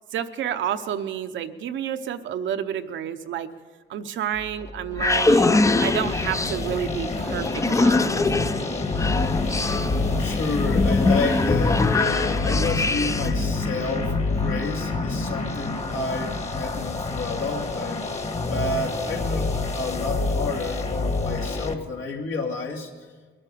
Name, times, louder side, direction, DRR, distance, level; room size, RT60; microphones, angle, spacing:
voice 1, 0.1-3.5 3.9-8.2, right 9 dB, 75° right, 9 dB, 0.9 m, -30 dB
sound 1, 4.4-13.4, left 3 dB, 15° left, 0.5 m, -23 dB
sound 2, 5.7-21.7, left 3 dB, 35° left, 1.6 m, -27 dB
voice 2, 10.2-19.5 19.7-22.9, left 3 dB, 75° left, 0 dB, 2.4 m, -30 dB
21.5 x 8.7 x 6.8 m, 1.4 s
cardioid pair, 90°, 20 cm